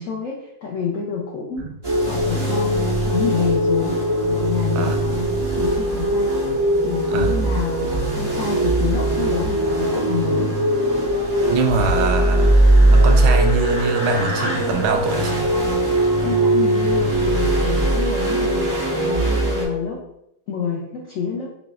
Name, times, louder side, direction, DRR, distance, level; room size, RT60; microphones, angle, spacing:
voice 1, 0.0-1.6 2.1-10.5 16.2-20.0 20.5-21.5, left 6 dB, 75° left, -2 dB, 0.7 m, -28 dB
sound 1, 1.8-19.6, right 1 dB, 30° right, 0.4 m, -19 dB
voice 2, 11.5-12.6 12.9-15.5, right 4 dB, 75° right, 4 dB, 1.1 m, -23 dB
5.0 x 3.1 x 2.4 m, 0.79 s
omnidirectional pair, 2.1 m